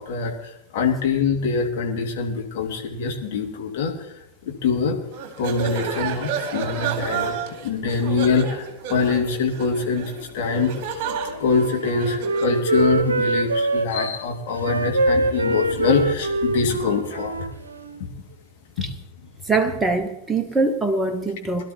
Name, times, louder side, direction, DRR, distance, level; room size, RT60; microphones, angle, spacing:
voice 1, 0.0-3.9 4.4-5.0 5.4-7.4 7.6-11.0 11.4-17.5, left 5 dB, 50° left, 2 dB, 2.2 m, -24 dB
sound 1, 5.1-12.6, right 6 dB, 45° right, 1.8 m, -31 dB
Wind instrument woodwind instrument, 11.0-14.1 14.5-18.0, right 2 dB, 75° right, 0.8 m, -24 dB
voice 2, 19.4-21.7, right 3 dB, 10° right, 6 dB, 0.9 m, -23 dB
21.5 x 12.0 x 2.9 m, 0.90 s
figure-of-eight pair, 90°, 0 cm